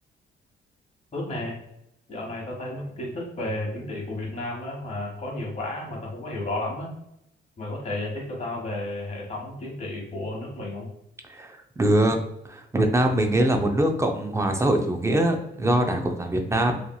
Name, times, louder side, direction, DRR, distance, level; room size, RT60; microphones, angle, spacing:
voice 1, 1.1-1.6 2.1-6.9 7.6-10.9, left 1 dB, 35° left, -2 dB, 1.2 m, -32 dB
voice 2, 11.3-12.2 12.5-16.8, right 1 dB, 15° right, 4 dB, 0.5 m, -23 dB
2.8 x 2.5 x 2.2 m, 0.80 s
cardioid pair, 90°, 20 cm